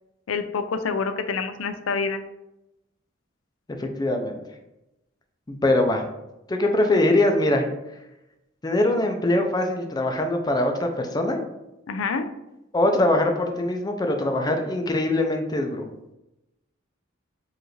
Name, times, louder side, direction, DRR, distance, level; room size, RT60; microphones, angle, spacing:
voice 1, 0.3-2.2 11.9-12.3, left 5 dB, 90° left, 9 dB, 0.4 m, -27 dB
voice 2, 3.8-4.4 5.5-6.0 6.5-7.7 8.6-11.4 12.7-15.9, left 1 dB, 20° left, 4 dB, 0.4 m, -22 dB
4.8 x 2.5 x 3.1 m, 0.92 s
head